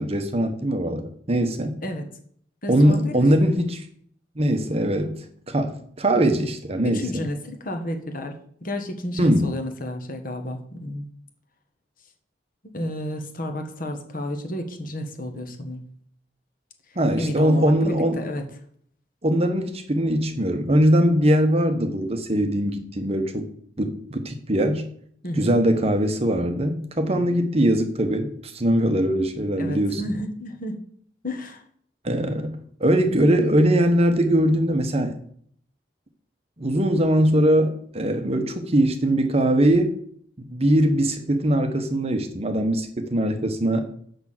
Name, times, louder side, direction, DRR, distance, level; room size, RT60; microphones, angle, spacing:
voice 1, 0.0-1.8 2.7-3.9 4.4-5.2 5.5-7.2 9.2-9.5 17.0-18.2 19.2-23.5 23.8-24.8 25.4-30.0 32.0-35.2 36.6-40.0 40.5-43.9, right 1 dB, 35° right, 7 dB, 1.0 m, -21 dB
voice 2, 2.6-3.5 6.8-8.3 8.6-11.1 12.7-15.8 17.2-18.4 25.2-25.6 27.1-27.4 29.5-30.7 31.2-31.6, left 1 dB, 50° left, 5 dB, 1.5 m, -31 dB
6.6 x 6.0 x 7.4 m, 0.62 s
head